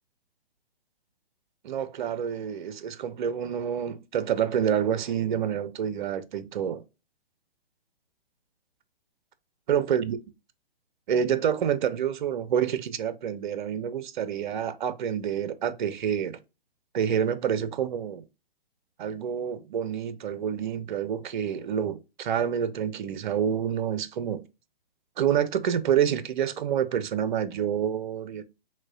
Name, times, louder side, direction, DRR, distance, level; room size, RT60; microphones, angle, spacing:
voice 1, 1.6-6.8 9.7-10.2 11.1-16.4 16.9-18.3 19.0-24.4 25.2-28.4, right 8 dB, 55° right, 0.5 m, -28 dB
6.0 x 2.1 x 2.3 m
figure-of-eight pair, 130°, 30 cm